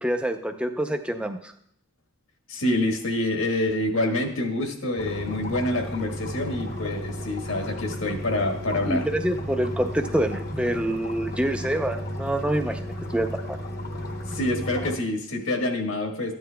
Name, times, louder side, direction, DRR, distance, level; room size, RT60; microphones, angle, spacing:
voice 1, 0.0-1.5 8.9-12.8 13.1-13.6, right 1 dB, 5° right, 5 dB, 0.5 m, -26 dB
voice 2, 2.5-9.0 14.3-16.3, left 1 dB, 80° left, 2 dB, 1.5 m, -27 dB
sound 1, 5.0-15.0, equal, 50° left, 0.9 m, -34 dB
14.0 x 9.5 x 2.2 m, 0.68 s
head